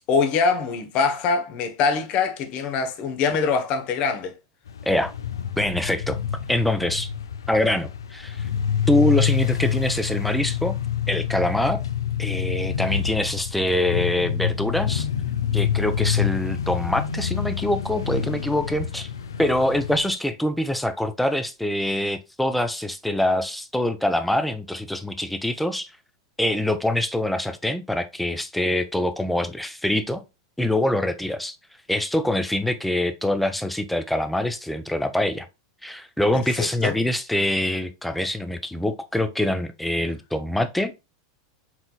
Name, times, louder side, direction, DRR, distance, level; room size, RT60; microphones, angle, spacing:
voice 1, 0.1-4.3 36.6-37.0, left 5 dB, 50° left, 0.9 m, -23 dB
sound 1, 4.7-20.1, left 9 dB, 85° left, 0.4 m, -27 dB
voice 2, 5.6-6.2 6.5-7.1 7.5-8.5 8.9-10.8 11.1-11.8 12.2-15.1 15.5-19.1 19.4-25.9 26.4-30.2 30.6-31.6 31.9-35.5 35.8-40.9, left 1 dB, 5° left, 0.6 m, -24 dB
4.3 x 3.9 x 2.2 m
hypercardioid pair, 105°, 2 cm